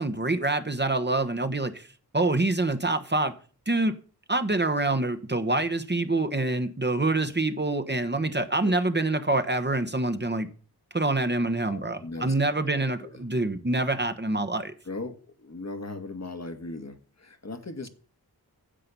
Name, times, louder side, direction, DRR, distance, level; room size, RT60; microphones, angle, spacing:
voice 1, 0.0-1.9 2.1-3.3 3.7-3.9 4.3-10.5 10.9-14.7, right 2 dB, 25° right, 1.1 m, -26 dB
voice 2, 11.6-13.2 14.8-17.9, left 2 dB, 45° left, 1.4 m, -39 dB
10.0 x 7.6 x 6.9 m
wide cardioid pair, 85°, 38 cm